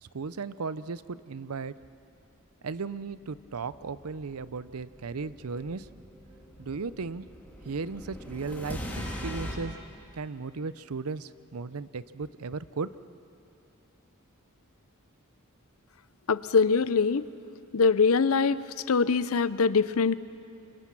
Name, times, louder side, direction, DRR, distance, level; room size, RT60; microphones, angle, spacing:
voice 1, 0.0-1.7 2.6-5.9 6.6-7.3 7.6-9.7 10.2-12.9, right 4 dB, 80° right, 16 dB, 0.6 m, -36 dB
sound 1, 3.1-9.5, equal, 10° left, 3.4 m, -41 dB
voice 2, 16.3-17.3 17.7-18.6 18.9-20.2, left 5 dB, 70° left, 16 dB, 0.6 m, -23 dB
29.0 x 25.0 x 6.1 m, 2.6 s
head